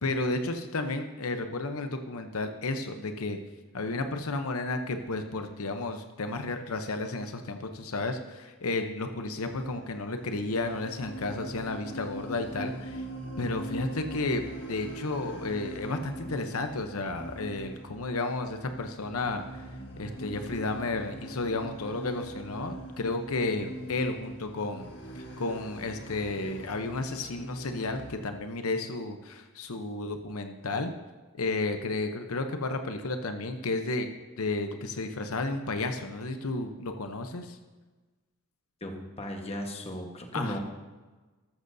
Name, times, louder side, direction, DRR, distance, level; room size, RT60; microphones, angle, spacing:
voice 1, 0.0-3.4 3.7-13.0 13.4-19.6 20.0-24.9 25.1-30.9 31.4-34.1 34.4-37.6 40.3-40.6, left 2 dB, 85° left, 6 dB, 0.8 m, -32 dB
sound 1, 9.5-28.2, right 1 dB, 55° left, 1.7 m, -42 dB
voice 2, 38.8-40.6, equal, 30° left, 2 dB, 1.3 m, -36 dB
13.5 x 13.0 x 2.7 m, 1.2 s
head